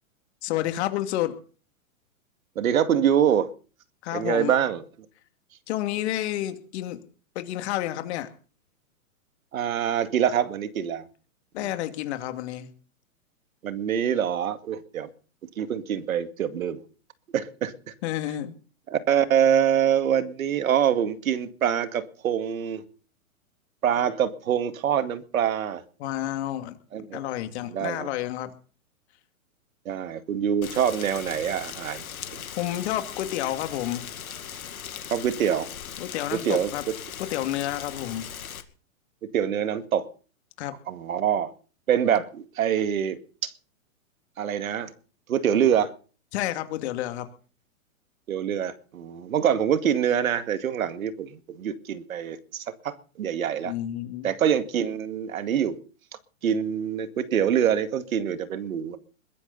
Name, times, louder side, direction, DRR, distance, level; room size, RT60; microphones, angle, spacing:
voice 1, 0.4-1.4 4.0-4.6 5.7-7.0 7.3-8.3 11.5-12.7 18.0-18.5 26.0-26.8 27.1-28.5 32.6-34.0 36.0-36.8 37.2-38.2 40.6-40.7 46.3-47.3 53.6-54.3, left 13 dB, 50° left, 8 dB, 2.6 m, -30 dB
voice 2, 2.6-3.5 4.1-4.8 9.5-11.1 13.6-15.1 15.6-16.8 17.3-17.9 18.9-22.8 23.8-25.8 26.9-27.2 27.7-28.1 29.9-32.0 32.3-32.4 35.1-35.7 36.3-36.9 39.2-40.0 40.9-41.5 41.9-43.2 43.4-43.5 44.4-44.9 45.3-45.9 48.3-53.7 54.2-55.8 56.4-59.0, right 9 dB, 75° right, 10 dB, 2.3 m, -25 dB
Rain, 30.6-38.6, left 8 dB, 85° left, 2.3 m, -39 dB
21.5 x 15.0 x 4.1 m, 0.39 s
hypercardioid pair, 140°, 42 cm